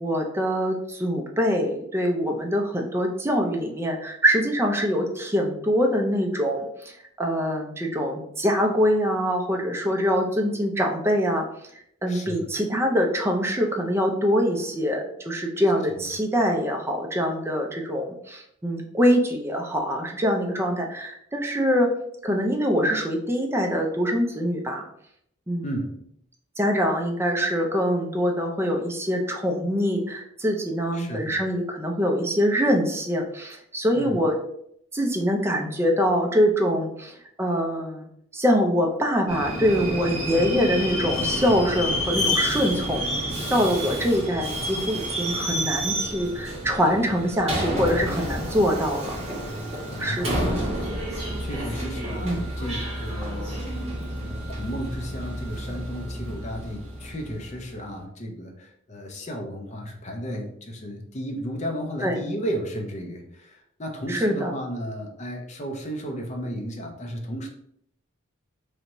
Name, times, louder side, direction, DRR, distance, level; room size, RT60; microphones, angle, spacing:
voice 1, 0.0-6.9 7.2-11.4 12.0-21.9 22.2-24.9 25.5-25.7 26.6-34.3 34.9-38.1 38.3-43.0 43.5-49.2 50.0-50.4 52.2-52.4 62.0-62.2 64.1-64.5, equal, 10° right, 2 dB, 0.5 m, -24 dB
voice 2, 12.1-12.4 15.9-16.0 25.6-26.1 30.9-31.4 33.9-34.2 49.9-50.6 51.4-53.7 54.1-67.5, equal, 35° left, 2 dB, 0.6 m, -34 dB
Subway metro underground, 39.3-57.7, equal, 30° right, 1.3 m, -30 dB
3.3 x 2.6 x 2.9 m, 0.71 s
head